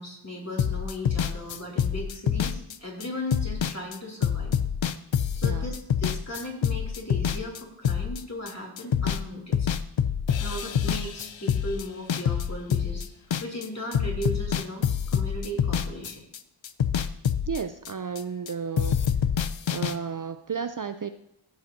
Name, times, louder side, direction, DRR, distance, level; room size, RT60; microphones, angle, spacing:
voice 1, 0.0-4.6 5.3-9.7 10.4-13.1 13.4-16.2, equal, 30° left, -1 dB, 3.0 m, -36 dB
sound 1, 0.6-9.3 9.5-13.7 13.9-16.4 16.6-18.5 18.8-19.9, left 8 dB, 65° left, 0.6 m, -26 dB
voice 2, 17.5-19.0 19.7-21.1, right 6 dB, 40° right, 9 dB, 0.5 m, -32 dB
14.5 x 7.9 x 2.7 m, 0.81 s
wide cardioid pair, 60°, 50 cm